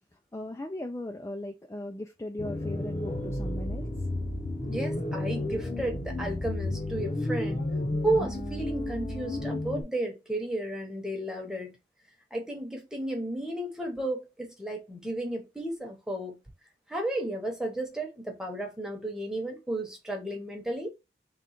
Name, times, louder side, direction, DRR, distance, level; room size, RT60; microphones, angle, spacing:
voice 1, 0.3-3.9, left 1 dB, 15° left, 0.3 m, -37 dB
sound 1, 2.4-9.8, left 1 dB, 30° left, 0.7 m, -32 dB
voice 2, 4.7-7.6 8.0-11.8 12.3-16.4 16.9-20.9, right 1 dB, 5° right, 0.9 m, -33 dB
3.7 x 2.4 x 4.3 m
head